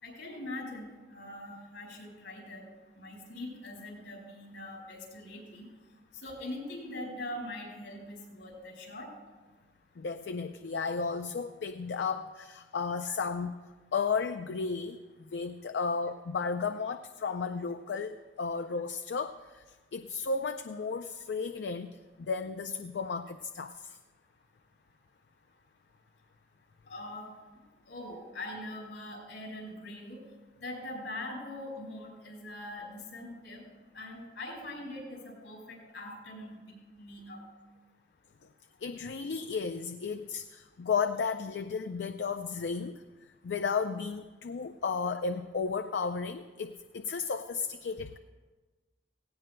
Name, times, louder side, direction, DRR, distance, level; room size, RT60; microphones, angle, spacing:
voice 1, 0.0-2.6 2.9-5.7 6.1-9.1 13.1-13.2 26.9-27.3 27.9-30.2 30.6-33.6 33.9-37.4, left 1 dB, 85° left, -2 dB, 4.7 m, -42 dB
voice 2, 10.0-13.6 13.9-15.0 15.3-19.6 19.9-21.9 22.3-24.0 38.8-43.0 43.4-48.2, left 5 dB, 70° left, 8 dB, 0.4 m, -33 dB
17.5 x 17.0 x 2.2 m, 1.3 s
head